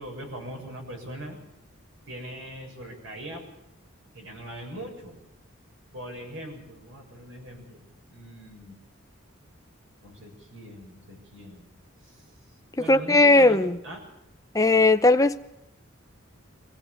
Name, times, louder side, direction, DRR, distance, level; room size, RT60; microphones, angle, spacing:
voice 1, 0.0-1.4 2.1-3.4 4.1-5.2 5.9-8.8 10.0-11.7 12.0-12.3 12.8-14.1, right 1 dB, 70° right, 7.3 m, -41 dB
voice 2, 12.9-13.8 14.5-15.4, left 2 dB, 15° left, 0.7 m, -18 dB
23.5 x 16.0 x 8.3 m
head